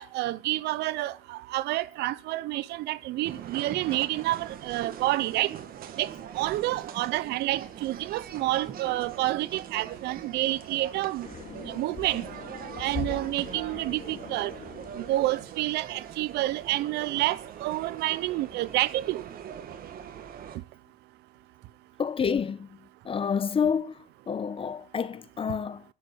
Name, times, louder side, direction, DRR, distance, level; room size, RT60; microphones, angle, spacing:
voice 1, 0.0-5.5 6.0-11.3 11.6-12.2 12.8-14.5 15.0-19.2, right 17 dB, 80° right, 0.7 m, -29 dB
sound 1, 3.2-20.6, right 9 dB, 60° right, 1.8 m, -42 dB
sound 2, 11.2-15.9, left 6 dB, 50° left, 2.1 m, -41 dB
voice 2, 22.0-22.7 23.0-23.9 24.3-25.8, left 6 dB, 30° left, 1.0 m, -28 dB
14.0 x 7.2 x 7.7 m
cardioid pair, 110°, 17 cm